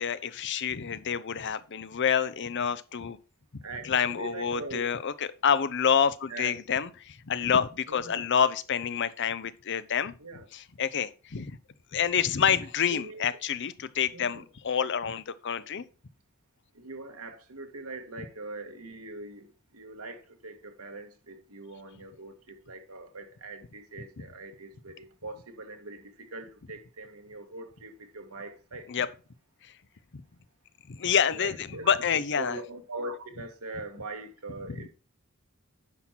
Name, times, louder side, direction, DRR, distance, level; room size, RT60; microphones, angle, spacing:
voice 1, 0.0-3.2 3.5-10.1 10.5-11.6 11.9-15.8 24.2-24.3 28.9-29.1 29.6-29.7 30.9-32.6 34.7-34.9, left 7 dB, 55° left, 0.6 m, -28 dB
voice 2, 3.6-4.9 6.3-6.6 7.9-8.2 10.2-10.5 12.9-13.2 14.1-14.4 16.7-19.5 19.7-28.9 31.3-31.9 32.4-34.9, right 2 dB, 80° right, 1.7 m, -42 dB
9.8 x 5.8 x 4.4 m
head